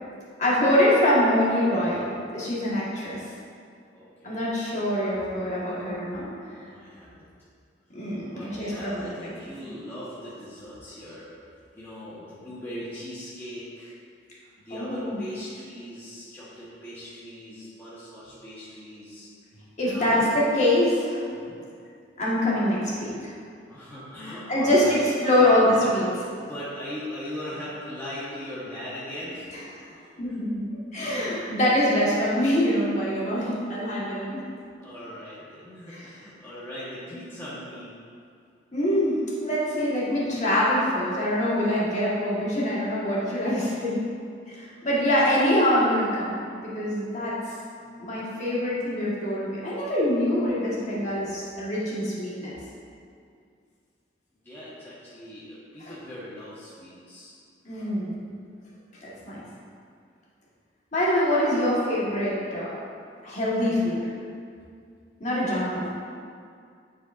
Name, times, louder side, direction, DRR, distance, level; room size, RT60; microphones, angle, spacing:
voice 1, 0.4-2.0 2.3-3.2 4.2-6.3 7.9-9.1 14.7-15.2 19.8-20.2 20.5-21.2 22.2-23.3 24.5-26.0 30.2-30.6 30.9-34.4 35.9-36.0 38.7-44.0 44.5-47.4 47.8-52.6 55.8-55.9 57.6-58.1 59.0-59.4 60.9-62.7 63.2-64.1 65.2-65.9, left 1 dB, 40° left, -7 dB, 1.5 m, -24 dB
voice 2, 3.9-4.5 5.2-5.3 6.6-7.3 8.3-11.3 11.7-13.9 14.6-19.3 19.8-20.3 21.3-21.6 23.7-25.9 26.2-29.5 29.9-30.1 34.8-38.0 54.4-57.3 65.4-65.8, equal, 10° left, -10 dB, 1.1 m, -39 dB
10.0 x 4.8 x 2.5 m, 2.3 s
head